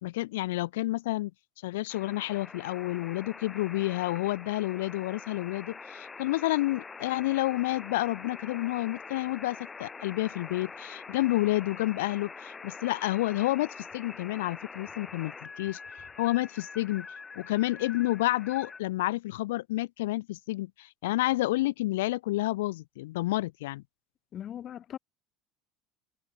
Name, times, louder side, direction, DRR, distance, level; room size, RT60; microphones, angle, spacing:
voice 1, 0.0-1.3 1.6-15.8 16.2-17.1 17.4-23.8, left 18 dB, 75° left, 2.4 m, -30 dB
sound 1, 1.9-18.8, left 4 dB, 25° left, 5.3 m, -45 dB
voice 2, 24.3-25.0, left 10 dB, 45° left, 2.5 m, -39 dB
hypercardioid pair, 70°, 0 cm